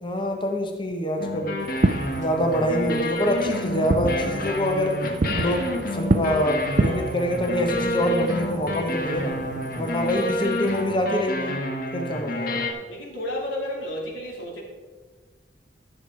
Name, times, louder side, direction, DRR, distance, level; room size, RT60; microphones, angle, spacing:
voice 1, 0.0-1.6 2.2-5.0 5.3-9.3 9.8-11.6 11.9-12.7, equal, 25° left, 3 dB, 1.1 m, -25 dB
sound 1, 1.2-12.7, left 1 dB, 50° left, 1.4 m, -29 dB
Fireworks, 1.7-10.9, right 2 dB, 40° right, 0.5 m, -30 dB
voice 2, 10.0-10.4 12.9-14.6, left 1 dB, 75° left, -2 dB, 2.9 m, -33 dB
13.0 x 6.8 x 4.6 m, 1.4 s
head